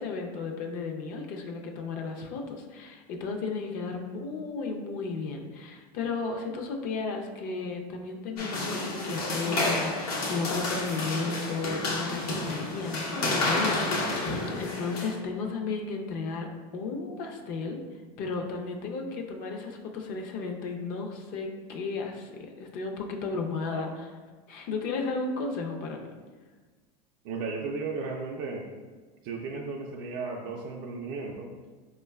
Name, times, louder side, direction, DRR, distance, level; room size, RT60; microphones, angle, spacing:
voice 1, 0.0-17.8 18.2-24.1 24.5-26.1, left 4 dB, 45° left, 3 dB, 0.5 m, -34 dB
sound 1, 8.4-15.1, left 2 dB, 80° left, 0.8 m, -30 dB
voice 2, 27.2-28.7 29.2-31.5, right 4 dB, 50° right, -1 dB, 0.4 m, -35 dB
4.6 x 2.2 x 2.2 m, 1.4 s
supercardioid pair, 115°, 19 cm